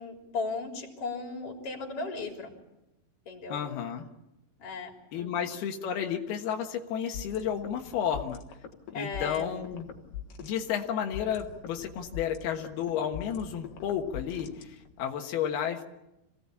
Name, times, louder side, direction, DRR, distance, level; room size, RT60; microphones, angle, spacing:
voice 1, 0.0-2.5 3.3-3.6 4.6-5.5 8.9-9.5, left 3 dB, 40° left, 2 dB, 4.3 m, -36 dB
voice 2, 3.5-4.1 5.1-8.4 8.9-9.9 10.4-15.8, left 8 dB, 90° left, 3 dB, 3.4 m, -32 dB
sound 1, 7.1-15.1, left 8 dB, 65° left, 3.2 m, -44 dB
26.5 x 17.5 x 8.5 m, 0.91 s
omnidirectional pair, 4.3 m